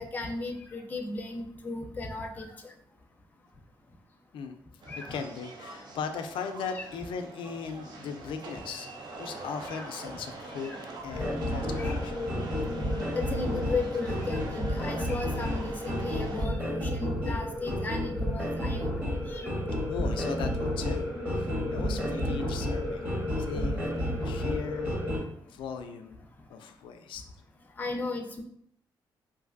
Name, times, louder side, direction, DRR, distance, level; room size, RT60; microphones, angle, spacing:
voice 1, 0.0-2.5 4.9-5.1 6.7-6.9 9.7-9.9 10.6-10.8 11.8-12.0 13.1-18.9 19.3-19.5 27.8-28.4, left 3 dB, 20° left, 3 dB, 0.5 m, -35 dB
sound 1, 4.8-16.5, right 3 dB, 60° right, 0.6 m, -43 dB
voice 2, 5.1-10.7 11.0-12.3 19.9-21.1 21.3-23.0 23.4-26.2 26.5-27.2, left 6 dB, 80° left, 7 dB, 0.4 m, -38 dB
sound 2, 11.1-25.2, equal, 20° right, 1.2 m, -31 dB
3.2 x 2.5 x 2.5 m, 0.68 s
cardioid pair, 110°, 8 cm